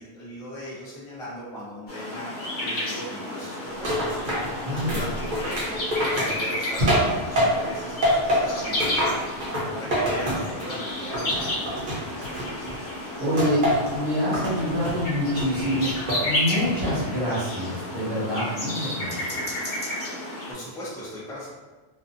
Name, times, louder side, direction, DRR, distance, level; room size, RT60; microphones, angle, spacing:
voice 1, 0.0-4.2 4.9-9.2 9.7-11.9 20.2-21.5, left 1 dB, 5° left, -8 dB, 0.5 m, -38 dB
sound 1, 1.9-20.5, left 1 dB, 65° left, 0.9 m, -32 dB
sound 2, 3.8-7.7 8.0-10.8 11.1-12.8 13.4-14.0 14.3-15.0 15.4-16.3 16.6-17.1, equal, 55° right, 0.9 m, -26 dB
voice 2, 4.6-5.0 13.2-13.6 13.9-15.9 16.2-19.6, equal, 70° right, -8 dB, 1.1 m, -26 dB
2.5 x 2.4 x 2.5 m, 1.3 s
omnidirectional pair, 1.1 m